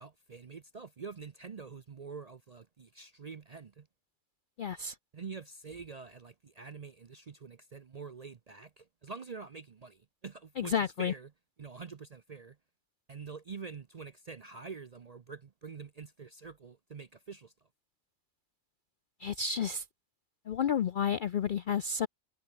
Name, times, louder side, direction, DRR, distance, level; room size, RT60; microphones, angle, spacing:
voice 1, 0.0-3.9 5.1-11.3 11.6-12.6 13.1-17.5, right 5 dB, 45° right, 0.5 m, -46 dB
voice 2, 4.6-5.0 10.6-11.1 19.2-19.8 20.5-22.1, left 7 dB, 65° left, 0.5 m, -31 dB
omnidirectional pair, 1.4 m